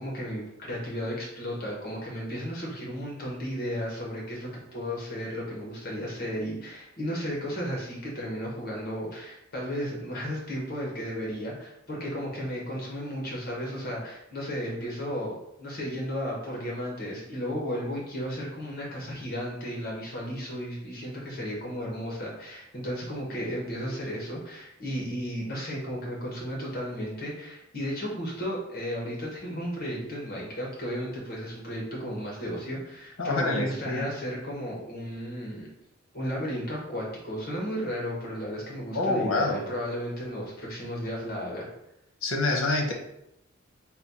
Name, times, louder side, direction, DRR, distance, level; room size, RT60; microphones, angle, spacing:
voice 1, 0.0-35.7 36.1-41.7, equal, 50° left, -3 dB, 1.1 m, -34 dB
voice 2, 33.2-34.1 38.9-39.6 42.2-42.9, left 2 dB, 75° left, 2 dB, 0.8 m, -26 dB
4.1 x 2.3 x 4.2 m, 0.81 s
head